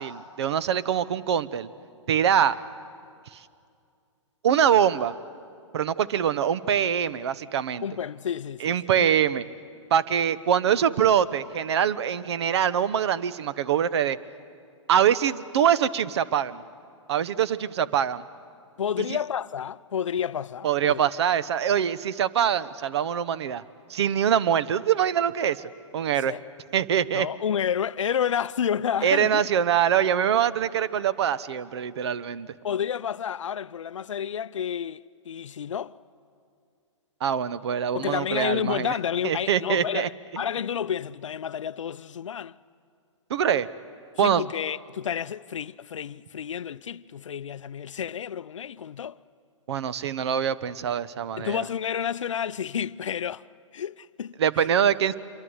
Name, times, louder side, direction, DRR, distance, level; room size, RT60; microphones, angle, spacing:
voice 1, 0.0-1.7 2.1-2.6 4.4-5.1 5.7-7.8 8.6-9.4 9.9-14.2 14.9-16.6 17.1-18.2 19.0-19.1 20.6-23.6 23.9-25.7 25.9-26.3 26.7-27.3 29.0-32.5 37.2-38.9 39.2-40.4 43.3-43.7 44.2-44.4 49.7-51.6 54.4-55.1, right 9 dB, 55° right, 1.0 m, -24 dB
voice 2, 7.8-9.1 18.8-21.0 26.2-26.4 27.1-29.4 32.6-35.9 37.9-42.5 44.2-49.2 51.4-53.4 53.7-54.7, left 8 dB, 70° left, 0.6 m, -30 dB
26.5 x 23.5 x 8.0 m
figure-of-eight pair, 120°, 16 cm